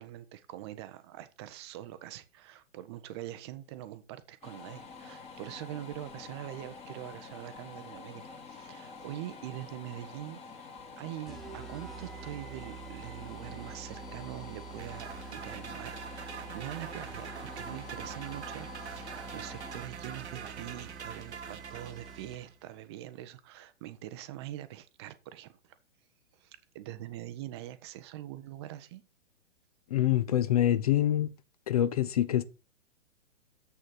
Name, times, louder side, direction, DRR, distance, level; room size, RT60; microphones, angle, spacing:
voice 1, 0.0-10.7 11.0-25.8 26.3-29.0, right 13 dB, 25° right, 0.5 m, -44 dB
sound 1, 4.4-19.8, left 4 dB, 15° left, 1.6 m, -48 dB
sound 2, 11.3-22.6, right 6 dB, ahead, 1.4 m, -47 dB
sound 3, 14.8-22.5, right 6 dB, 65° right, 1.0 m, -44 dB
voice 2, 29.9-31.3 31.7-32.4, left 12 dB, 35° left, 0.4 m, -25 dB
7.5 x 6.3 x 4.6 m
figure-of-eight pair, 110°, 35 cm